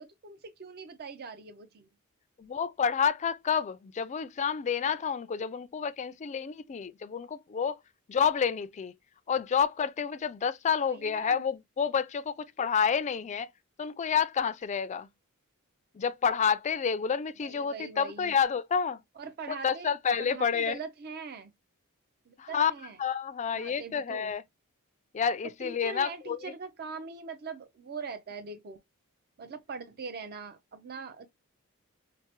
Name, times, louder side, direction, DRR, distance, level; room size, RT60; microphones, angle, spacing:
voice 1, 0.0-1.9 10.9-11.4 17.4-18.3 19.2-19.9 20.2-21.5 22.3-23.0 23.5-24.3 25.6-28.8 29.4-31.3, right 5 dB, 45° right, 0.5 m, -42 dB
voice 2, 2.4-7.8 8.1-8.9 9.3-13.5 13.8-15.1 15.9-19.0 19.5-20.8 22.4-22.7 23.0-24.4 25.1-26.5, left 7 dB, 30° left, 0.3 m, -29 dB
4.5 x 2.1 x 3.0 m
head